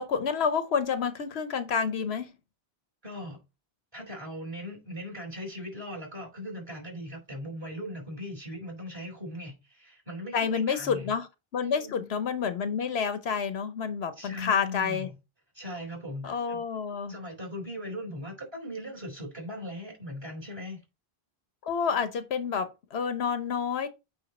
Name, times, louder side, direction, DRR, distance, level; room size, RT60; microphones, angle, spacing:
voice 1, 0.0-2.3 10.3-11.3 11.5-15.1 16.2-17.1 21.6-23.9, left 6 dB, 80° left, 1.1 m, -29 dB
voice 2, 3.0-3.4 3.9-11.1 11.6-12.1 14.2-15.1 15.5-16.6 17.1-20.8, left 1 dB, 25° right, 4.1 m, -39 dB
8.8 x 3.3 x 4.2 m
omnidirectional pair, 1.0 m